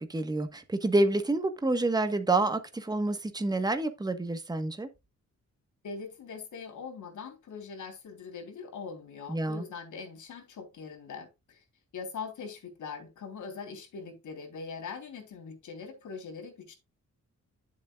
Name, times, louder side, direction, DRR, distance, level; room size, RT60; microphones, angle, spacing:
voice 1, 0.0-4.9 9.3-9.6, right 2 dB, 15° right, 1.3 m, -28 dB
voice 2, 5.8-11.6 11.9-16.8, left 5 dB, 85° left, 3.6 m, -42 dB
11.5 x 7.5 x 2.4 m
wide cardioid pair, 135°, 29 cm